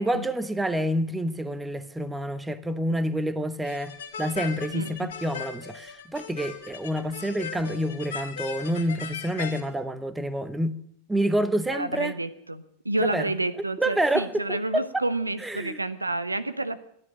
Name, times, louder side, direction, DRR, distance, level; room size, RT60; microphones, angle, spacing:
voice 1, 0.0-3.9 4.2-10.8 11.1-12.1 13.0-13.3 13.8-15.0 15.4-15.8, right 1 dB, 5° right, 0.9 m, -28 dB
sound 1, 3.6-9.6, left 7 dB, 60° left, 2.6 m, -38 dB
voice 2, 4.7-5.1 11.7-16.8, right 2 dB, 85° right, 0.8 m, -30 dB
13.5 x 11.0 x 8.7 m
figure-of-eight pair, 90°, 0 cm